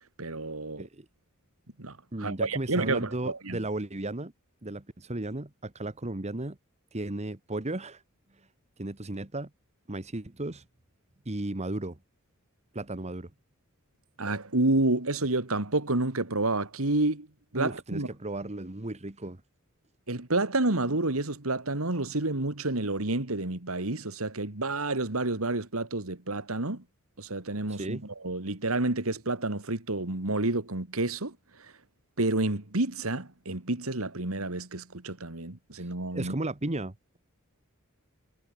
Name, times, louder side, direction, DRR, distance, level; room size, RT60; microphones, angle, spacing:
voice 1, 0.2-0.8 1.8-3.6 14.2-17.3 17.5-18.1 20.1-26.8 27.2-31.3 32.2-36.3, right 2 dB, 75° right, 2.5 m, -29 dB
voice 2, 2.1-4.3 4.6-6.6 6.9-8.0 8.8-9.5 9.9-10.6 11.2-12.0 12.7-13.3 17.5-19.4 27.7-28.1 35.8-35.9 36.1-37.2, right 2 dB, 30° right, 1.4 m, -35 dB
head